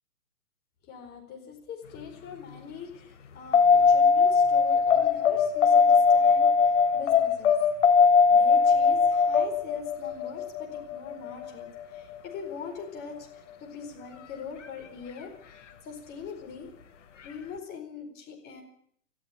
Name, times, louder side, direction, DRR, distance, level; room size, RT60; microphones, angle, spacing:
voice 1, 0.8-7.6 8.3-13.3 13.6-15.6 15.8-16.7 17.2-18.6, left 5 dB, 20° left, 3 dB, 4.6 m, -42 dB
sound 1, 3.5-11.9 14.6-14.7, left 5 dB, 50° left, 3.0 m, -21 dB
18.0 x 14.5 x 9.9 m, 0.65 s
figure-of-eight pair, 125°, 46 cm